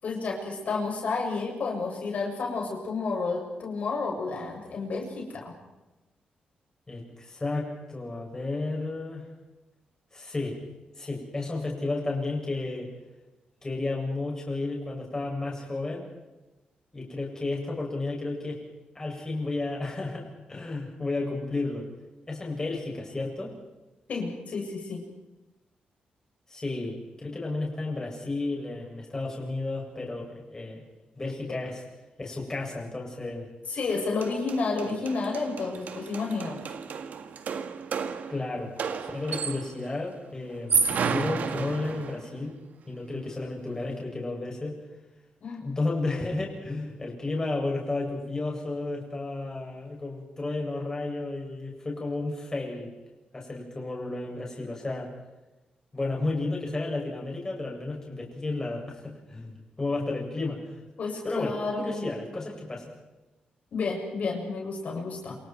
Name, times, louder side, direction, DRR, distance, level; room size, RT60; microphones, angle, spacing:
voice 1, 0.0-5.4 24.1-25.0 31.5-31.6 33.7-36.6 45.4-45.6 61.0-62.1 63.7-65.4, left 4 dB, 55° left, -1 dB, 7.2 m, -31 dB
voice 2, 6.9-9.3 10.1-10.6 11.0-12.9 13.6-16.1 16.9-18.6 18.9-21.9 22.3-23.5 26.5-30.8 31.2-31.8 32.2-33.5 38.3-42.5 42.9-44.7 45.6-52.9 53.3-55.1 55.9-60.8 61.2-62.9, left 2 dB, 20° left, -2 dB, 7.5 m, -32 dB
sound 1, 33.9-34.0 34.2-39.8 40.5-42.3, right 5 dB, 65° right, 2.0 m, -31 dB
28.5 x 28.0 x 4.7 m, 1.1 s
wide cardioid pair, 135°, 3 cm